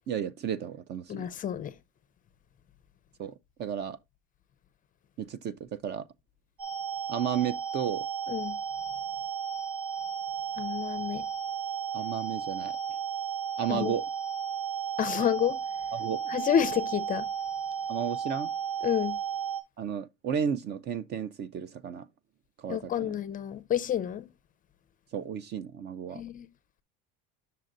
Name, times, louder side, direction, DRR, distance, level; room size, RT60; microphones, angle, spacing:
voice 1, 0.1-1.3 3.2-4.0 5.2-6.1 7.1-8.1 11.9-12.8 13.6-14.0 15.9-16.3 17.9-18.5 19.8-22.1 22.6-23.1 25.1-26.2, right 8 dB, 35° right, 0.4 m, -33 dB
voice 2, 1.1-1.7 8.3-8.6 10.6-11.2 13.7-13.9 15.0-15.6 16.3-17.3 18.8-19.2 22.7-24.3 26.1-26.5, left 9 dB, 25° left, 0.5 m, -29 dB
sound 1, 6.6-19.6, right 7 dB, 60° right, 3.5 m, -34 dB
8.8 x 6.6 x 2.5 m
cardioid pair, 145°, 32 cm